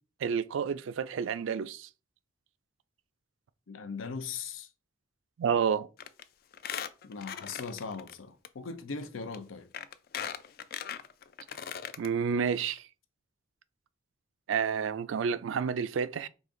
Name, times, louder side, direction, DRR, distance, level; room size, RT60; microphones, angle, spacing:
voice 1, 0.2-1.9 5.4-5.9 12.0-12.8 14.5-16.3, right 6 dB, 75° right, 0.3 m, -30 dB
voice 2, 3.7-4.7 7.0-9.7, left 5 dB, 85° left, 0.6 m, -39 dB
Squeak, 6.0-6.2 6.5-8.1 8.4-8.5 9.3-9.4 9.7-12.1 12.5-12.6 12.8-12.9, left 8 dB, 50° left, 0.3 m, -39 dB
5.0 x 2.5 x 3.7 m
head